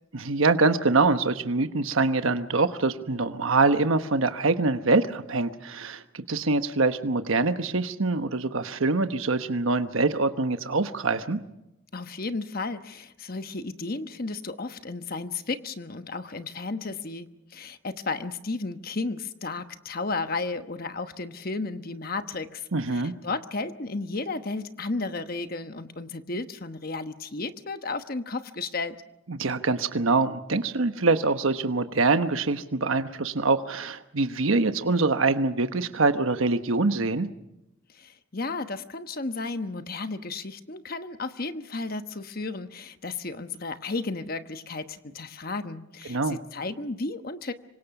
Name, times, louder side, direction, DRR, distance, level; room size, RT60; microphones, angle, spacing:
voice 1, 0.1-11.4 22.7-23.1 29.3-37.3 46.1-46.4, right 3 dB, 80° right, 9 dB, 1.1 m, -24 dB
voice 2, 11.9-29.0 37.9-47.5, left 3 dB, 45° left, 9 dB, 1.1 m, -33 dB
26.5 x 24.5 x 6.0 m, 0.89 s
head